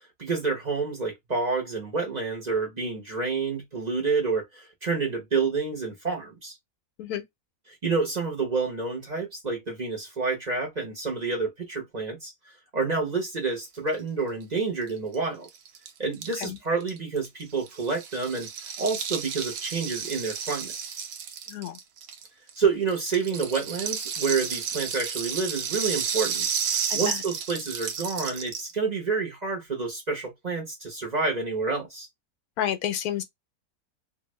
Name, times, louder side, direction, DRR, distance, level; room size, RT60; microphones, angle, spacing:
voice 1, 0.2-6.5 7.7-12.3 12.7-15.5 16.0-18.5 18.8-20.7 22.6-26.5 26.9-32.1, right 4 dB, 30° right, 1.0 m, -28 dB
Rattle (instrument), 14.9-15.0 15.1-15.2 15.4-22.6 22.9-28.7, right 7 dB, 85° right, 1.2 m, -32 dB
voice 2, 32.6-33.2, left 10 dB, 85° left, 1.2 m, -30 dB
2.7 x 2.6 x 3.1 m
omnidirectional pair, 1.5 m